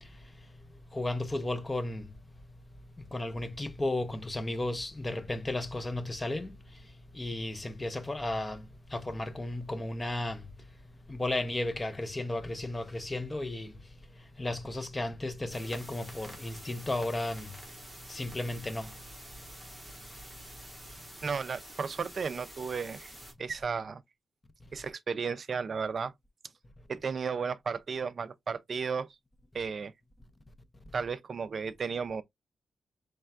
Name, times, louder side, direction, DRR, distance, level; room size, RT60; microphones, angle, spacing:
voice 1, 0.9-2.1 3.0-6.6 7.1-10.4 11.1-13.7 14.4-17.5 18.1-18.9, left 2 dB, 15° left, 0.5 m, -34 dB
sound 1, 15.5-23.3, right 1 dB, 5° right, 1.4 m, -48 dB
voice 2, 21.2-23.1 23.4-24.0 24.7-26.1 26.9-29.1 29.5-29.9 30.9-32.2, right 5 dB, 45° right, 0.3 m, -34 dB
4.5 x 3.2 x 2.3 m
wide cardioid pair, 170°, 0 cm